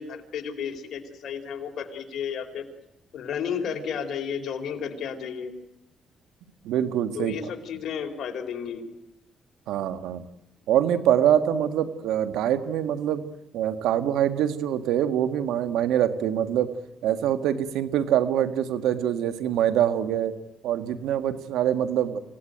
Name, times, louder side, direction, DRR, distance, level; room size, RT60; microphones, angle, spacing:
voice 1, 0.0-2.6 3.1-5.5 7.1-8.9, left 7 dB, 65° left, 4 dB, 4.4 m, -32 dB
voice 2, 6.6-7.5 9.7-10.2 10.7-13.2 13.5-16.7 17.0-20.3 20.6-22.2, right 10 dB, 90° right, 10 dB, 1.7 m, -24 dB
27.0 x 17.5 x 9.2 m, 0.90 s
cardioid pair, 90°, 0 cm